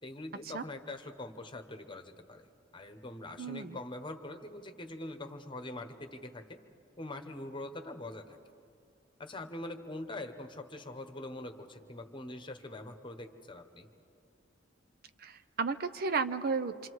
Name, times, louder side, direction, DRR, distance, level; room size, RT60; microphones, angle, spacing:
voice 1, 0.0-2.5 2.7-6.6 7.0-8.4 9.2-13.9, left 2 dB, 25° left, 7 dB, 1.2 m, -43 dB
voice 2, 3.4-3.8 15.2-16.9, right 4 dB, 50° right, 11 dB, 0.6 m, -33 dB
27.5 x 26.0 x 4.8 m, 2.7 s
head